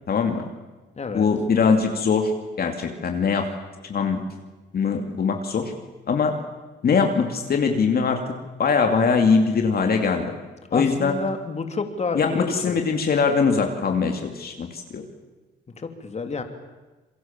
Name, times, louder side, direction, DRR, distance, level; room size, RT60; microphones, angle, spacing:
voice 1, 0.1-0.4 1.1-2.3 2.6-3.5 3.8-4.2 4.7-5.7 6.1-6.3 6.8-10.3 10.7-11.2 12.1-15.0, left 5 dB, 50° left, 4 dB, 2.6 m, -22 dB
voice 2, 1.0-1.3 10.7-12.8 15.8-16.4, left 4 dB, 35° left, 6 dB, 2.9 m, -29 dB
27.5 x 22.5 x 7.4 m, 1.2 s
cardioid pair, 90°, 20 cm